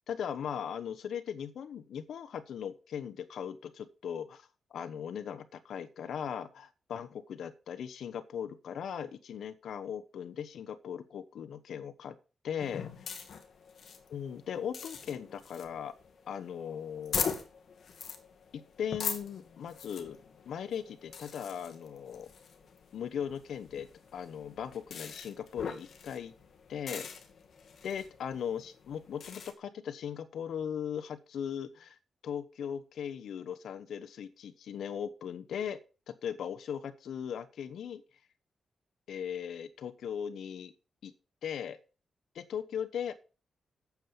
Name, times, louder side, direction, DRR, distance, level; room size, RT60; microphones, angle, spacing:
voice 1, 0.1-12.2 12.4-13.1 14.1-15.9 16.3-17.4 18.5-20.2 20.5-22.3 22.9-26.3 26.7-27.1 27.8-32.0 32.2-35.8 36.1-38.0 39.1-40.7 41.0-41.1 41.4-41.8 42.3-43.1, left 8 dB, 85° left, 9 dB, 1.0 m, -38 dB
sound 1, 12.6-29.5, left 6 dB, 65° left, 2.0 m, -42 dB
9.2 x 7.4 x 7.0 m, 0.35 s
cardioid pair, 110°, 0 cm